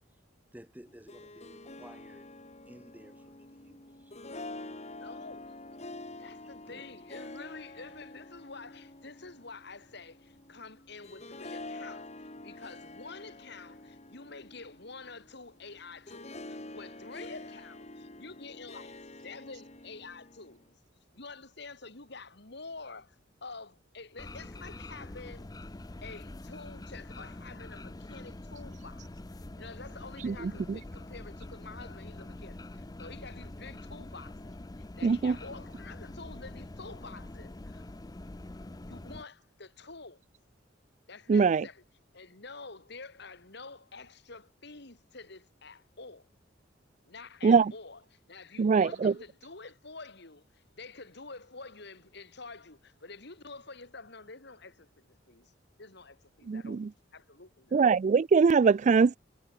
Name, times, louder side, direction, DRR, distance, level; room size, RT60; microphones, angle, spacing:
voice 1, 0.5-2.3 2.7-4.1 6.7-6.9, equal, 10° right, 1.6 m, -53 dB
Harp, 0.9-20.7, left 2 dB, 35° left, 3.3 m, -47 dB
voice 2, 4.8-5.5 6.2-20.6 21.1-23.2 23.4-25.5 26.0-29.1 29.6-34.5 35.0-38.0 38.9-40.2 41.1-41.8 42.1-46.3 47.1-55.5 55.8-56.8 57.1-57.8, left 3 dB, 60° left, 2.9 m, -48 dB
sound 1, 24.2-39.2, left 2 dB, 20° left, 0.6 m, -45 dB
voice 3, 30.2-30.8 35.0-35.3 41.3-41.6 47.4-47.7 48.6-49.1 56.5-56.9 57.7-59.2, right 5 dB, 40° right, 0.3 m, -23 dB
head